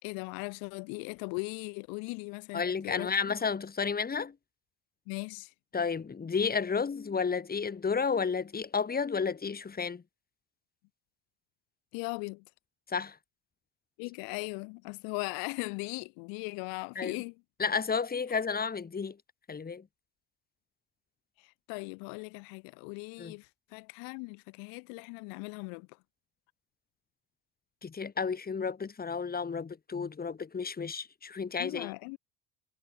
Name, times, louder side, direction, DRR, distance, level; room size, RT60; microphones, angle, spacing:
voice 1, 0.0-3.1 5.1-5.5 11.9-12.4 14.0-17.3 21.4-25.9 31.6-32.2, left 35 dB, 70° left, 5.1 m, -39 dB
voice 2, 2.5-4.3 5.7-10.0 12.9-13.2 16.9-17.2 17.6-19.2 19.5-19.8 23.2-23.3 27.8-31.9, left 5 dB, 25° left, 6.5 m, -32 dB
supercardioid pair, 95°, 36 cm